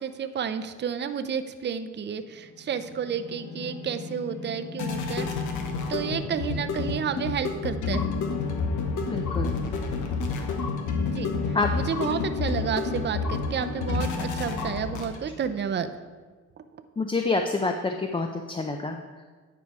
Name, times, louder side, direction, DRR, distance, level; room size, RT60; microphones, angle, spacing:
voice 1, 0.0-5.4 5.9-8.1 11.1-15.9 16.6-16.8, right 7 dB, 35° right, 9 dB, 0.6 m, -31 dB
sound 1, 2.7-15.5, left 4 dB, 85° left, 1.2 m, -30 dB
voice 2, 9.1-9.5 11.5-11.7 17.0-19.0, left 3 dB, 15° left, 5 dB, 0.5 m, -27 dB
9.7 x 4.8 x 4.7 m, 1.4 s
cardioid pair, 90°, 30 cm